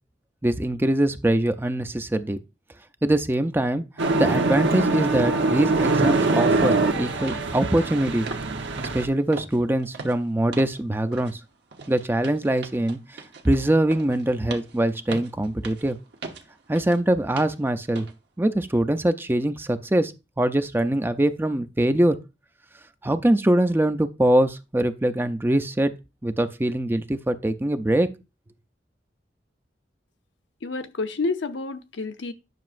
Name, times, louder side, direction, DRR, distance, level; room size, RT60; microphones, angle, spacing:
voice 1, 0.4-2.4 3.0-3.8 4.2-8.3 8.9-11.4 11.9-13.0 13.4-16.0 16.7-18.1 18.4-20.1 20.4-22.2 23.0-25.9 26.2-28.1, right 1 dB, 10° right, 0.5 m, -23 dB
sound 1, 4.0-9.1, right 3 dB, 90° right, 1.0 m, -23 dB
sound 2, 7.3-7.5 7.8-8.0 8.3-8.5 8.8-10.8 11.1-11.4 11.7-17.0 17.4-17.6 17.9-18.1 18.6-18.7, right 3 dB, 65° right, 1.0 m, -39 dB
voice 2, 30.6-32.3, left 3 dB, 85° left, 0.7 m, -29 dB
9.4 x 6.0 x 2.5 m
head